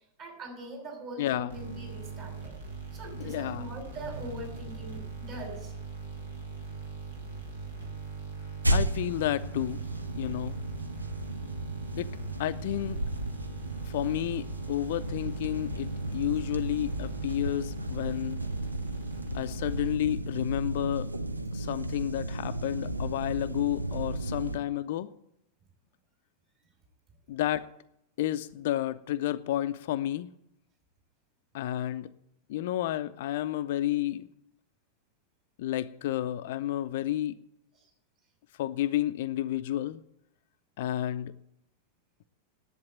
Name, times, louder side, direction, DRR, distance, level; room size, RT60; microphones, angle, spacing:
voice 1, 0.2-2.5 2.9-5.7 37.7-37.9, equal, 40° right, 2 dB, 6.1 m, -42 dB
voice 2, 1.2-1.5 3.2-3.7 8.7-9.8 10.1-10.6 12.0-12.1 12.4-13.0 13.9-18.4 19.3-21.1 21.5-25.1 27.3-27.7 28.2-30.3 31.5-32.1 32.5-34.3 35.6-37.4 38.6-40.0 40.8-41.3, left 13 dB, 55° left, 13 dB, 0.5 m, -31 dB
sound 1, 1.5-20.3, right 5 dB, 70° right, 2.9 m, -41 dB
sound 2, 8.6-24.6, right 1 dB, 85° right, 0.7 m, -34 dB
10.5 x 8.7 x 9.1 m, 0.79 s
figure-of-eight pair, 90°, 0 cm